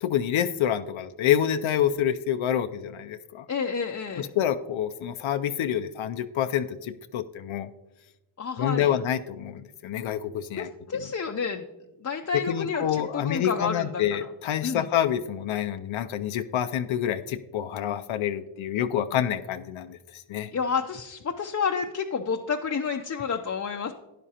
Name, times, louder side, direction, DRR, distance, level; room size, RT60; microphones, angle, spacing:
voice 1, 0.0-3.5 4.2-7.7 8.6-10.7 12.5-20.5, left 10 dB, 80° left, 9 dB, 0.6 m, -27 dB
voice 2, 3.5-4.3 8.4-8.9 10.6-11.7 12.0-14.3 14.6-14.9 20.5-23.9, left 6 dB, 35° left, 3 dB, 0.6 m, -30 dB
12.0 x 10.0 x 2.8 m, 1.0 s
cardioid pair, 100°, 47 cm